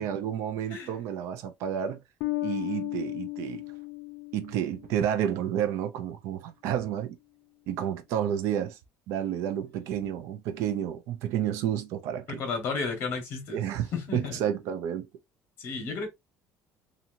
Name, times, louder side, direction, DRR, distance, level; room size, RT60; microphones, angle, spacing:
voice 1, 0.0-2.0 2.4-3.6 4.3-7.2 7.7-8.8 9.1-12.4 13.5-15.1, right 9 dB, 65° right, 0.5 m, -30 dB
Bass guitar, 2.2-5.2, left 19 dB, 70° left, 0.4 m, -35 dB
voice 2, 12.3-13.7 13.9-14.4 15.6-16.1, left 5 dB, 45° left, 1.3 m, -33 dB
2.9 x 2.6 x 2.5 m
cardioid pair, 180°, 5 cm